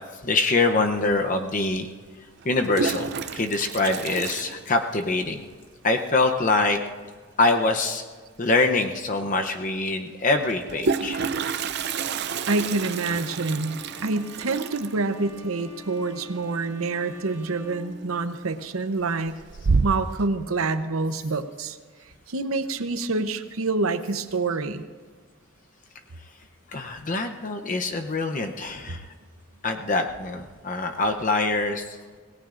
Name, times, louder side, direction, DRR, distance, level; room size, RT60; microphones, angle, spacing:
voice 1, 0.1-1.9 2.4-5.4 5.8-6.8 7.4-8.0 8.4-11.2 26.7-29.1 29.6-32.0, left 3 dB, 35° left, 5 dB, 0.7 m, -24 dB
Toilet flush, 1.1-1.2 2.4-5.2 5.5-5.6 5.9-6.0 6.2-6.6 8.4-8.5 8.8-8.9 10.4-17.1 17.4-17.9 18.3-18.8 19.2-20.2, right 4 dB, 50° right, 0.5 m, -29 dB
voice 2, 12.5-19.4 19.8-21.8 22.3-24.8, right 3 dB, 80° right, 10 dB, 0.8 m, -27 dB
Bowed string instrument, 12.8-18.7, left 1 dB, 35° right, 1.6 m, -47 dB
26.0 x 18.0 x 2.5 m, 1.5 s
head